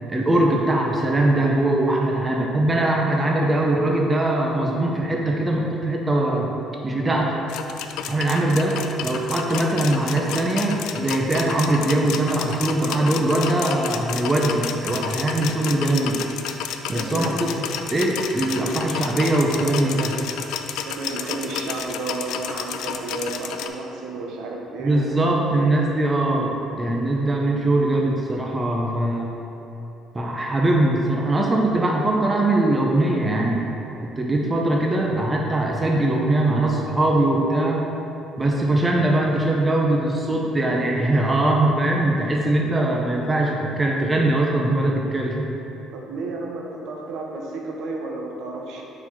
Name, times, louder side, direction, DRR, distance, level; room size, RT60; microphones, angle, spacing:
voice 1, 0.1-6.5 6.8-7.4 8.1-16.2 16.9-17.5 17.9-20.2 24.8-29.3 30.1-33.7 34.0-37.9 38.4-45.5, right 1 dB, 15° right, -1 dB, 0.6 m, -21 dB
sound 1, 7.5-23.7, left 8 dB, 80° left, 0.3 m, -31 dB
voice 2, 16.9-17.4 20.9-25.3 45.9-48.8, right 3 dB, 70° right, 0 dB, 0.9 m, -32 dB
4.5 x 4.4 x 5.6 m, 2.9 s
cardioid pair, 135°, 0 cm